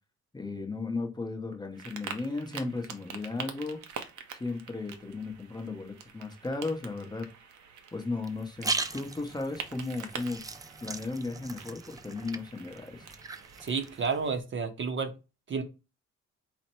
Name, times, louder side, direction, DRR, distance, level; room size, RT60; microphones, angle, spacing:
voice 1, 0.3-3.8 4.3-7.3 7.9-10.4 10.8-13.0, left 3 dB, 15° left, 3 dB, 0.7 m, -35 dB
sound 1, 1.7-14.1, right 7 dB, 80° right, 0.7 m, -46 dB
sound 2, 8.3-14.4, right 3 dB, 15° right, 0.3 m, -39 dB
voice 2, 13.6-15.1 15.5-15.6, right 5 dB, 40° right, 7 dB, 0.7 m, -30 dB
4.2 x 2.1 x 4.3 m, 0.28 s
cardioid pair, 90°, 30 cm